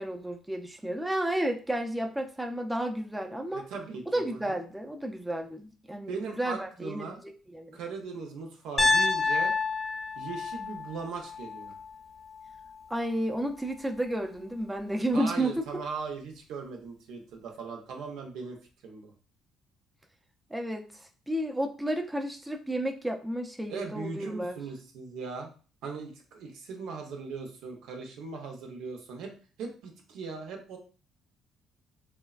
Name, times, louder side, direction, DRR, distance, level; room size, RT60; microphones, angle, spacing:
voice 1, 0.0-3.7 4.1-7.8 12.9-15.7 20.5-24.6, right 1 dB, 10° right, 3 dB, 0.4 m, -32 dB
voice 2, 3.5-4.6 6.1-7.2 7.7-9.5 10.2-11.7 15.1-19.1 23.7-25.5 25.8-29.3 29.6-30.8, right 4 dB, 75° right, 2 dB, 0.6 m, -39 dB
Piano, 8.8-12.8, left 3 dB, 30° left, 0.7 m, -29 dB
3.2 x 2.1 x 2.3 m, 0.38 s
supercardioid pair, 75°, 0 cm